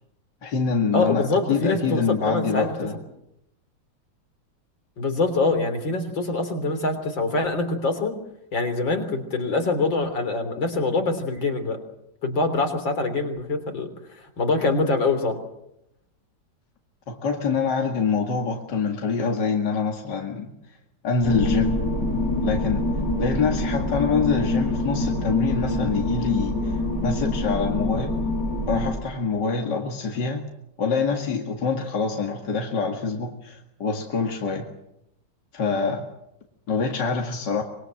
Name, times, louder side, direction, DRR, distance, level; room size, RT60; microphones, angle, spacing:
voice 1, 0.4-2.9 17.1-20.5 21.0-21.8 22.4-22.9 23.2-28.1 28.7-30.5 30.8-34.7 35.5-36.1 36.7-37.6, left 5 dB, 65° left, 2 dB, 2.7 m, -25 dB
voice 2, 0.9-2.7 5.0-8.2 8.5-11.8 12.2-13.9 14.2-15.4, left 3 dB, 85° left, 7 dB, 4.1 m, -24 dB
sound 1, 21.2-28.9, left 1 dB, 50° left, 7.7 m, -25 dB
25.5 x 22.5 x 7.8 m, 0.82 s
omnidirectional pair, 2.0 m